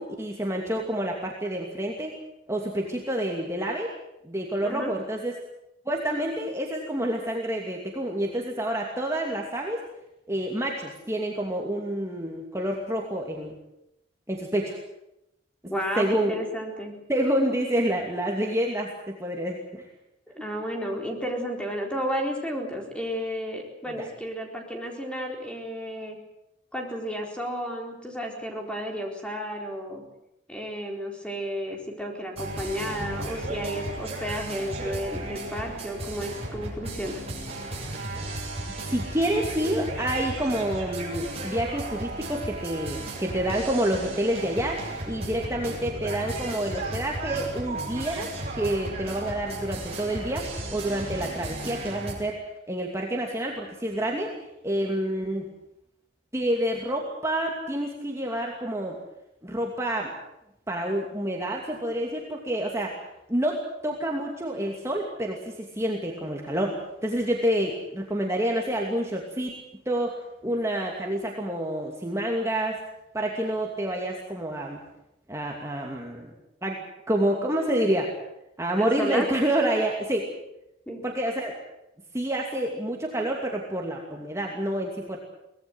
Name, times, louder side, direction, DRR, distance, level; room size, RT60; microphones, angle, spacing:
voice 1, 0.0-2.1 2.5-3.9 4.2-5.3 5.9-9.8 10.3-13.5 14.3-14.8 16.0-16.4 17.1-19.8 24.0-24.1 38.7-48.3 48.6-54.3 54.6-55.5 56.3-59.0 59.4-60.1 60.7-62.9 63.3-69.5 69.9-70.2 70.4-72.8 73.1-74.8 75.3-76.3 76.6-76.8 77.1-78.1 78.6-80.3 81.0-81.6 82.1-85.2, right 1 dB, 15° right, 0 dB, 2.6 m, -28 dB
voice 2, 4.6-4.9 15.7-16.9 20.3-26.2 26.7-30.0 30.5-37.2 78.8-79.3 80.9-81.0, equal, 5° left, 1 dB, 4.3 m, -32 dB
sound 1, 32.4-52.1, right 1 dB, 35° right, 7.9 m, -35 dB
23.5 x 19.0 x 8.0 m, 0.85 s
head